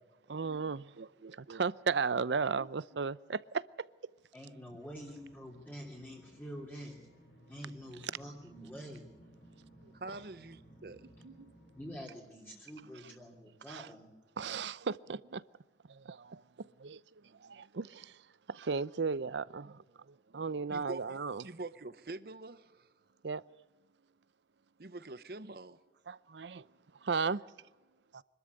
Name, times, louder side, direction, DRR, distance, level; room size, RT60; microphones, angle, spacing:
voice 1, 0.3-3.6 11.2-11.5 13.7-13.9 14.4-15.4 15.9-18.2 18.5-21.5 23.2-23.4 26.1-26.6 27.0-27.4 28.1-28.2, right 5 dB, 85° right, 0.6 m, -36 dB
voice 2, 4.3-7.0 7.5-9.1 11.7-14.1, equal, 10° left, 3.0 m, -47 dB
sound 1, 4.8-12.1, equal, 75° left, 4.4 m, -59 dB
voice 3, 9.9-11.1 20.7-22.9 24.8-25.8, right 2 dB, 55° right, 0.8 m, -45 dB
25.0 x 13.0 x 8.3 m
head